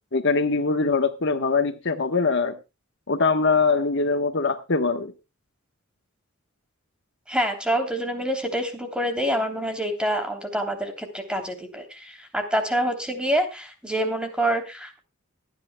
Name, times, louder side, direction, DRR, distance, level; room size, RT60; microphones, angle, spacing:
voice 1, 0.1-2.6 3.1-5.1, left 4 dB, 60° left, 1.1 m, -22 dB
voice 2, 7.3-15.0, right 1 dB, 5° right, 3.1 m, -26 dB
24.5 x 10.0 x 2.2 m
head